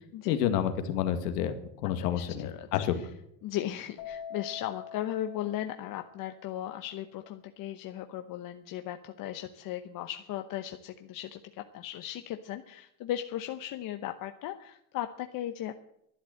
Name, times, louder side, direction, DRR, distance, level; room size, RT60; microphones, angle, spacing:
voice 1, 0.3-1.5 1.8-2.9, left 10 dB, 80° left, 8 dB, 2.1 m, -29 dB
voice 2, 2.0-3.1 3.4-15.8, left 12 dB, 45° left, 7 dB, 1.0 m, -37 dB
Keyboard (musical), 4.0-6.5, left 8 dB, 65° left, 3.2 m, -45 dB
12.0 x 10.0 x 7.8 m, 0.75 s
supercardioid pair, 120°, 48 cm